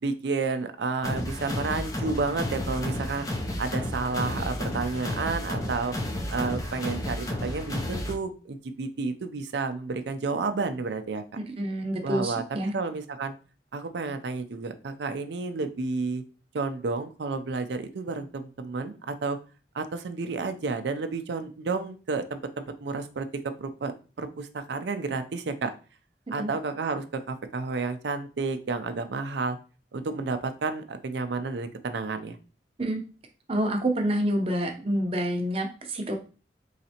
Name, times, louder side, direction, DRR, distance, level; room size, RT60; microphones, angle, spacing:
voice 1, 0.0-3.3 3.6-6.0 6.3-11.2 12.0-12.4 12.7-13.3 13.7-16.2 16.5-19.4 19.7-23.9 24.2-25.7 26.3-29.6 29.9-32.4, right 4 dB, 75° right, 9 dB, 0.5 m, -31 dB
sound 1, 1.0-8.1, left 1 dB, 20° left, 0.5 m, -32 dB
voice 2, 11.5-12.7 26.4-26.5 32.8-33.0 33.5-36.1, right 1 dB, 30° right, 4 dB, 0.6 m, -27 dB
3.9 x 3.2 x 2.8 m, 0.36 s
head